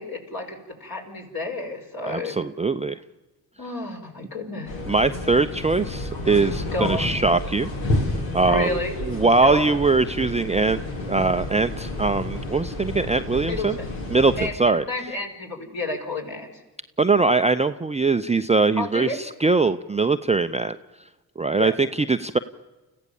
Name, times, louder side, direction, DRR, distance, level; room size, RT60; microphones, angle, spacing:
voice 1, 0.0-2.4 3.6-4.8 6.7-7.1 8.5-9.0 9.4-9.8 13.4-13.9 14.4-16.6 18.8-19.2 21.5-21.7, left 2 dB, 50° left, 1 dB, 5.5 m, -31 dB
voice 2, 2.0-3.0 4.9-7.7 8.3-8.7 9.0-10.8 11.1-13.8 14.1-14.3 14.6-14.8 17.0-20.8 21.4-22.4, right 3 dB, 15° right, 9 dB, 0.6 m, -21 dB
sound 1, 4.7-14.5, left 1 dB, 65° left, 3.3 m, -30 dB
29.5 x 15.0 x 7.1 m, 1.2 s
hypercardioid pair, 45°, 47 cm